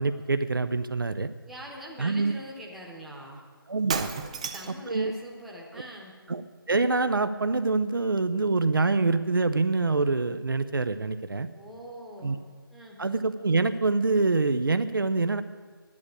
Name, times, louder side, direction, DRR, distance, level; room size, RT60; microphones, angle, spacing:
voice 1, 0.0-1.3 2.0-2.3 3.7-4.1 4.9-5.1 6.3-6.4 6.7-11.5 12.2-12.4 13.0-15.4, right 3 dB, 65° right, 11 dB, 0.7 m, -25 dB
voice 2, 1.5-3.4 4.3-6.1 11.5-12.4 12.7-13.0, equal, ahead, -4 dB, 1.0 m, -43 dB
Shatter, 3.9-4.9, right 6 dB, 15° right, 0.4 m, -32 dB
10.5 x 8.5 x 9.8 m, 1.5 s
figure-of-eight pair, 155°, 12 cm